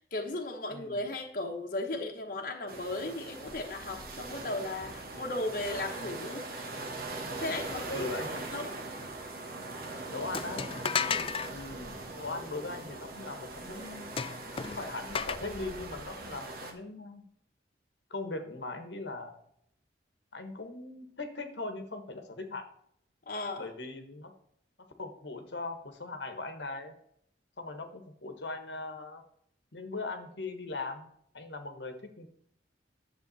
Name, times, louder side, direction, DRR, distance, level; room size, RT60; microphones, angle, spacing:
voice 1, 0.0-6.8 7.4-7.9 8.5-8.7 11.0-11.3 23.3-23.7, left 2 dB, 50° left, 1 dB, 1.2 m, -36 dB
sound 1, 2.7-16.7, right 2 dB, 50° right, 1.5 m, -41 dB
voice 2, 7.9-8.5 10.1-10.7 11.5-14.1 14.7-17.2 18.1-19.4 20.3-22.6 23.6-24.3 25.0-26.9 27.6-29.2 29.7-32.3, left 3 dB, 75° left, 7 dB, 1.3 m, -40 dB
sound 2, 10.3-11.5 14.2-15.4, left 6 dB, 30° left, 0.3 m, -33 dB
10.0 x 7.4 x 4.1 m, 0.69 s
head